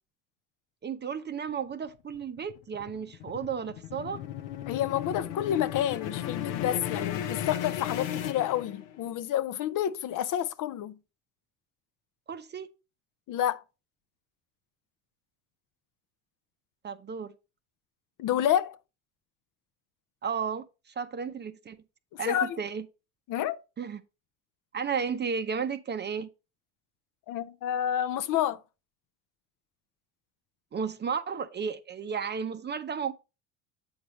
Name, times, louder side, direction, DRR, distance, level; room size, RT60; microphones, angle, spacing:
voice 1, 0.8-4.2 12.3-12.7 16.8-17.3 20.2-20.6 21.0-21.8 22.2-22.8 23.8-24.0 24.7-26.3 30.7-33.1, right 6 dB, 25° right, 0.6 m, -33 dB
sound 1, 1.9-9.1, left 10 dB, 75° left, 0.9 m, -35 dB
voice 2, 4.7-11.0 13.3-13.6 18.2-18.8 22.1-22.6 23.3-23.6 27.3-28.6, left 11 dB, 50° left, 0.6 m, -29 dB
7.9 x 4.8 x 3.1 m
hypercardioid pair, 75°, 39 cm